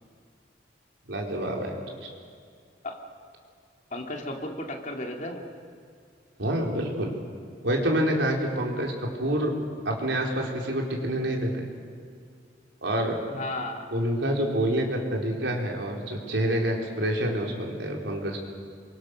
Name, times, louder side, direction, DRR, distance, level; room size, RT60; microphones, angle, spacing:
voice 1, 1.1-1.7 2.0-2.1 6.4-7.1 7.6-9.6 9.8-11.7 12.8-13.2 13.9-18.4, right 1 dB, 85° right, 0 dB, 4.3 m, -27 dB
voice 2, 3.9-5.4 13.3-13.9, left 1 dB, 45° left, 2 dB, 2.8 m, -34 dB
28.0 x 23.5 x 6.6 m, 2.2 s
head